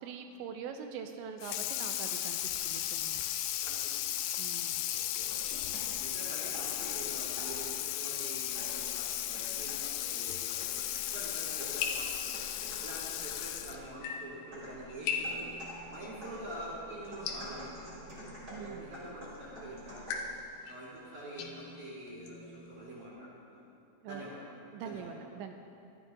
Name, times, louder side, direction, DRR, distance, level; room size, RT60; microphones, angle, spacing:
voice 1, 0.0-3.2 4.4-4.8 18.5-18.9 24.0-24.2 24.7-25.5, right 7 dB, 85° right, 5 dB, 2.8 m, -43 dB
Water tap faucet / Sink (filling or washing), 1.4-13.9, left 12 dB, 90° left, 2.5 m, -35 dB
voice 2, 3.6-4.1 4.9-5.6 5.9-10.8 11.1-12.1 12.3-12.4 12.8-15.5 15.8-17.9 18.6-20.2 20.6-23.6 24.0-24.4 24.8-25.1, right 1 dB, 45° right, -9 dB, 3.9 m, -46 dB
sound 1, 5.2-6.0 6.5-7.7 8.5-9.9 10.6-13.8 14.5-20.3, equal, 25° right, 3.9 m, -48 dB
sound 2, 11.8-23.1, left 5 dB, 70° left, 2.5 m, -42 dB
25.5 x 13.0 x 2.5 m, 2.6 s
omnidirectional pair, 5.5 m